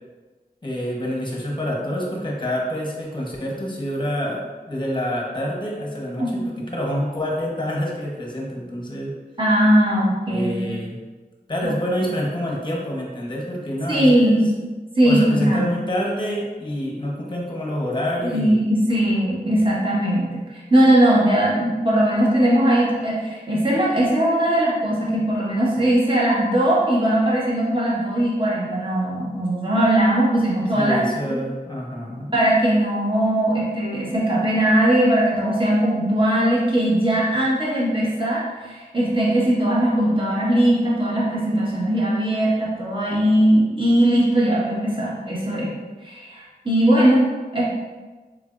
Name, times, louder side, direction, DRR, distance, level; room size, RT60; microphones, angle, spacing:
voice 1, 0.6-6.3 6.7-9.1 10.3-11.0 11.5-14.4 15.0-18.6 30.7-32.3, equal, 30° left, -2 dB, 0.9 m, -27 dB
voice 2, 6.2-6.5 9.4-10.7 11.6-11.7 13.9-14.5 14.9-15.6 18.2-31.4 32.3-45.7 46.0-47.2 47.5-47.6, right 1 dB, 30° right, -7 dB, 1.2 m, -19 dB
3.5 x 3.3 x 2.4 m, 1.3 s
wide cardioid pair, 55°, 16 cm